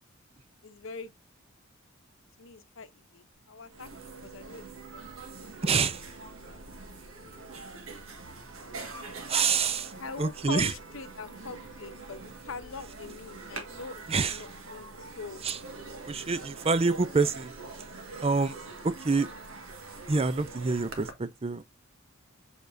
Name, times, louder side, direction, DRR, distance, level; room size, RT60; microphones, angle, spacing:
voice 1, 0.6-1.1 2.4-3.9 4.2-5.5 10.0-15.4, left 4 dB, 70° left, 0.8 m, -43 dB
sound 1, 3.4-3.5 3.6-21.1, right 3 dB, 85° right, 1.7 m, -44 dB
voice 2, 5.6-6.1 9.3-9.9 10.2-10.7 14.1-14.4 15.4-15.6 16.1-17.5 18.2-18.5 18.8-19.3 20.1-21.6, right 4 dB, 30° right, 0.5 m, -26 dB
7.0 x 5.2 x 2.6 m
head